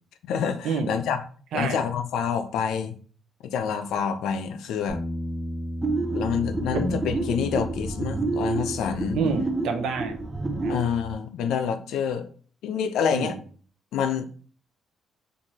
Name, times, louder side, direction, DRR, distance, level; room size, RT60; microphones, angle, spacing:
voice 1, 0.3-1.2 1.5-3.0 3.4-5.0 6.1-9.2 10.7-12.3 12.6-13.4 13.9-14.2, left 7 dB, 90° left, 0.4 m, -27 dB
Bass guitar, 4.9-11.1, equal, 20° left, 0.8 m, -36 dB
sound 1, 5.8-10.9, right 3 dB, 15° right, 0.5 m, -29 dB
voice 2, 9.1-10.1 10.6-10.7 13.1-13.4, right 5 dB, 75° right, 0.6 m, -27 dB
4.6 x 2.6 x 2.8 m
cardioid pair, 150°, 0 cm